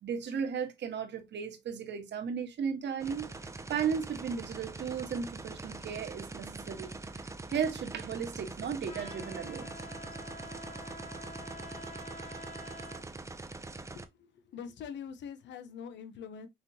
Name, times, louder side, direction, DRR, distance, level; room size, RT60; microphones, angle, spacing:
voice 1, 0.0-3.3 3.7-6.9 7.2-9.7, right 7 dB, 65° right, 1.3 m, -35 dB
sound 1, 3.0-14.1, right 3 dB, 15° right, 0.6 m, -43 dB
Trumpet, 8.8-13.1, left 1 dB, 35° left, 2.6 m, -47 dB
voice 2, 13.9-16.5, left 7 dB, 65° left, 0.8 m, -44 dB
5.8 x 3.1 x 2.7 m
cardioid pair, 90°, 20 cm